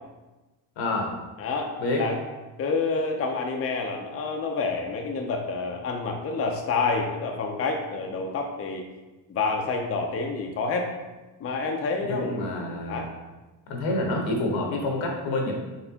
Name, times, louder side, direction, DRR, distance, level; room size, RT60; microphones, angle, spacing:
voice 1, 0.8-1.2 1.8-2.1 12.1-13.1 13.7-15.6, left 2 dB, 80° left, 1 dB, 1.0 m, -27 dB
voice 2, 1.4-2.2 2.6-8.8 9.3-10.9 11.4-13.1, left 4 dB, 30° left, 2 dB, 0.5 m, -28 dB
4.2 x 3.3 x 2.8 m, 1.1 s
cardioid pair, 95°, 46 cm